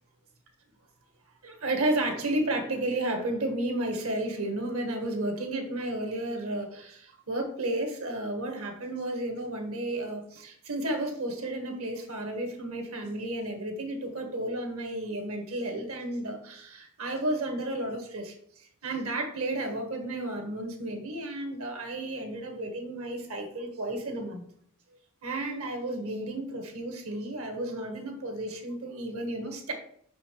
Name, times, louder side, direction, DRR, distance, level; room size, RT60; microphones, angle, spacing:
voice 1, 1.4-24.4 25.2-29.7, right 1 dB, 70° right, 4 dB, 1.5 m, -32 dB
5.7 x 5.5 x 4.5 m, 0.65 s
head